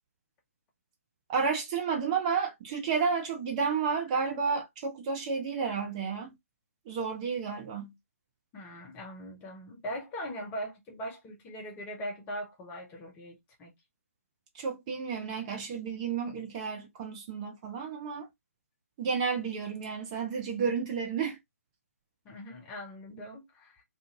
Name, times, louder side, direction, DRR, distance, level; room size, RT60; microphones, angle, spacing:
voice 1, 1.3-6.3 6.9-7.9 14.5-18.3 19.0-21.4, right 5 dB, 25° right, 0.6 m, -31 dB
voice 2, 8.5-13.7 22.3-23.8, equal, 15° left, 0.7 m, -40 dB
2.5 x 2.4 x 2.7 m
figure-of-eight pair, 140°, 8 cm